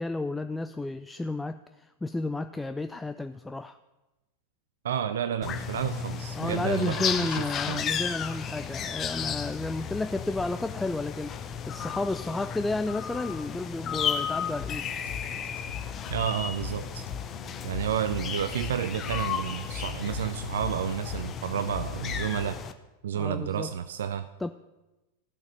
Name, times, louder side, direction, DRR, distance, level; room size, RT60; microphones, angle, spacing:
voice 1, 0.0-3.8 6.4-14.9 23.1-23.8 24.4-24.5, left 2 dB, 5° left, 10 dB, 0.4 m, -32 dB
voice 2, 4.8-7.8 16.1-17.1 17.6-22.6 23.0-24.3, right 9 dB, 60° right, 12 dB, 0.5 m, -31 dB
sound 1, 5.4-22.7, left 7 dB, 25° left, 0.8 m, -34 dB
sound 2, 14.6-22.6, left 7 dB, 70° left, 1.7 m, -41 dB
14.5 x 6.6 x 7.5 m, 1.1 s
figure-of-eight pair, 90°, 0 cm